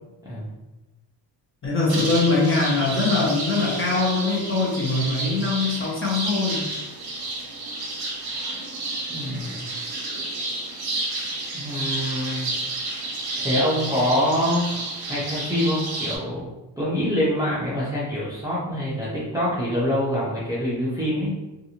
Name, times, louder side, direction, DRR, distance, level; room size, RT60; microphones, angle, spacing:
voice 1, 0.2-0.5 9.1-9.6 11.5-12.5 13.4-16.5 16.8-21.3, equal, 10° right, -9 dB, 0.5 m, -25 dB
voice 2, 1.6-6.7, left 3 dB, 25° left, -4 dB, 0.8 m, -22 dB
sound 1, 1.9-16.2, right 2 dB, 50° right, 0.7 m, -31 dB
2.6 x 2.5 x 2.8 m, 1.1 s
wide cardioid pair, 155°, 47 cm